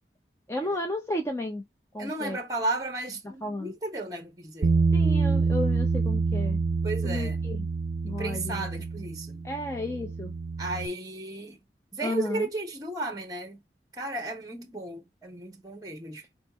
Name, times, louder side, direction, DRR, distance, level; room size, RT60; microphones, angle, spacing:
voice 1, 0.5-1.6 1.9-2.4 3.4-3.7 4.9-6.6 7.0-7.7 8.0-8.7 9.4-10.3 12.0-12.5, left 1 dB, 15° left, 0.6 m, -33 dB
voice 2, 2.0-4.7 6.8-7.4 8.1-9.5 10.6-11.6 11.9-13.6 13.9-16.3, right 2 dB, 20° right, 1.1 m, -34 dB
Bass guitar, 4.6-10.9, right 4 dB, 80° right, 0.5 m, -27 dB
4.4 x 3.3 x 3.0 m
head